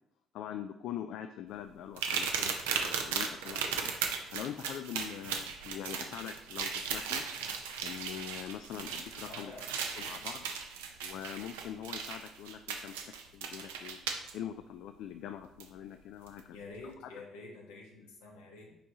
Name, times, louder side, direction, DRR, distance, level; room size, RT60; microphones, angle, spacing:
voice 1, 0.3-3.9 4.3-7.2 7.8-9.5 10.0-10.4 11.0-13.0 13.3-14.0 14.3-16.6 16.8-16.9, left 10 dB, 70° left, 7 dB, 0.3 m, -43 dB
sound 1, 2.0-14.3 15.6-15.7 16.3-16.4, right 6 dB, 85° right, 0.5 m, -37 dB
voice 2, 9.2-9.6 10.0-10.1 16.5-18.8, left 3 dB, 85° left, -1 dB, 1.3 m, -48 dB
7.0 x 4.7 x 2.8 m, 0.90 s
hypercardioid pair, 55°, 0 cm